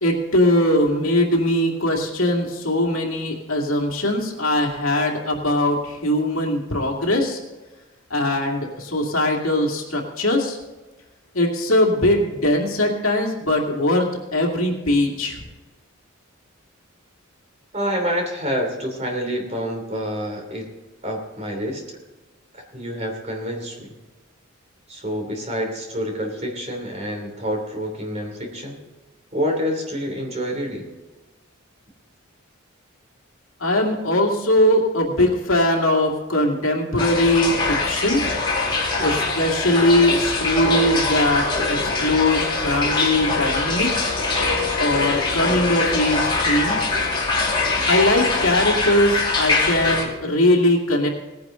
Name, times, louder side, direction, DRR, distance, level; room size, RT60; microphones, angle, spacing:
voice 1, 0.0-7.4 8.1-10.6 11.3-14.1 14.3-15.4 33.6-38.2 39.0-44.1 44.8-46.9 47.9-51.1, left 1 dB, 75° left, 1 dB, 2.5 m, -20 dB
voice 2, 17.7-20.7 21.0-22.0 22.5-23.9 24.9-28.8 29.3-30.9, equal, 30° right, 2 dB, 3.0 m, -27 dB
sound 1, 37.0-50.0, left 3 dB, 25° left, 2.6 m, -23 dB
18.5 x 10.5 x 3.8 m, 1.1 s
head